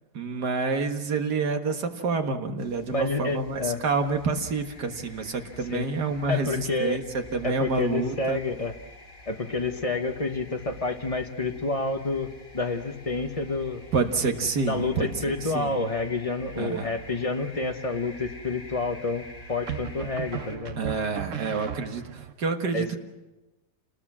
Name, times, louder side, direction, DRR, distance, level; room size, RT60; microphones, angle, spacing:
voice 1, 0.1-8.4 13.9-15.8 16.6-16.9 20.8-23.0, right 4 dB, 75° right, 5 dB, 2.2 m, -28 dB
sound 1, 2.6-20.6, equal, 45° left, 2.7 m, -47 dB
voice 2, 2.9-3.8 5.7-5.9 6.3-7.0 7.4-8.8 9.3-12.3 12.5-13.8 14.7-20.8 22.7-23.0, left 3 dB, 25° left, 5 dB, 1.1 m, -29 dB
sound 2, 17.0-17.6 19.7-22.3, right 10 dB, 55° right, 1.2 m, -36 dB
28.0 x 20.0 x 6.2 m, 1.1 s
omnidirectional pair, 1.8 m